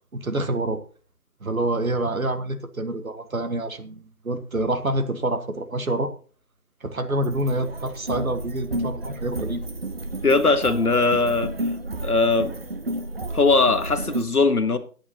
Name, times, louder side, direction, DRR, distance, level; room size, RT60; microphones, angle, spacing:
voice 1, 0.1-0.8 1.4-6.1 6.8-9.6, right 1 dB, 65° right, 1.6 m, -27 dB
sound 1, 7.2-14.3, right 1 dB, 40° right, 0.8 m, -31 dB
voice 2, 10.2-11.5 12.0-12.6 13.3-14.8, left 3 dB, 75° left, 1.3 m, -20 dB
20.0 x 8.6 x 2.9 m
figure-of-eight pair, 155°, 45 cm